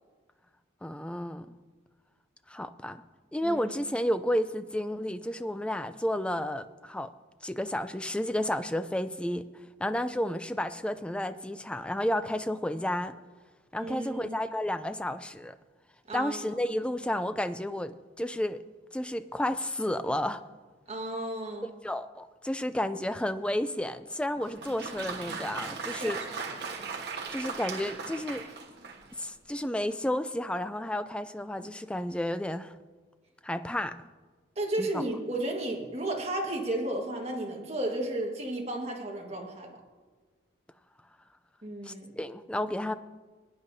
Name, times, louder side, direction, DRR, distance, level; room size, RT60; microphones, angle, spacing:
voice 1, 0.8-1.5 2.5-3.0 3.3-7.1 7.4-9.5 9.8-13.1 13.7-15.6 16.1-18.6 18.9-20.4 21.8-26.2 27.3-28.4 29.2-32.7 33.4-33.9 34.8-35.0 41.8-42.9, left 1 dB, 5° left, 11 dB, 0.3 m, -31 dB
voice 2, 13.8-14.4 16.1-16.4 20.9-21.7 26.0-26.3 34.5-39.7 41.6-42.1, right 1 dB, 35° right, 0 dB, 1.7 m, -33 dB
Applause, 24.4-29.2, right 5 dB, 60° right, 1.3 m, -38 dB
21.0 x 9.9 x 2.7 m, 1.4 s
head